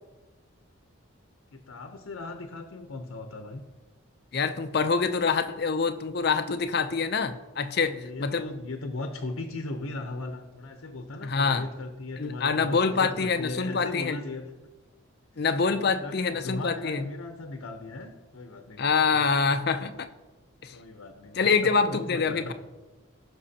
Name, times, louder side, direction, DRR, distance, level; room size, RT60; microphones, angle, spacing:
voice 1, 1.5-3.6 7.9-14.5 15.4-19.2 20.7-22.5, left 2 dB, 80° left, 5 dB, 0.7 m, -38 dB
voice 2, 4.3-7.9 8.2-8.5 11.2-11.7 12.2-14.2 15.4-17.1 18.8-20.1 20.6-20.7 21.4-22.5, left 5 dB, 50° left, 10 dB, 0.5 m, -25 dB
16.5 x 6.0 x 2.8 m, 1.2 s
head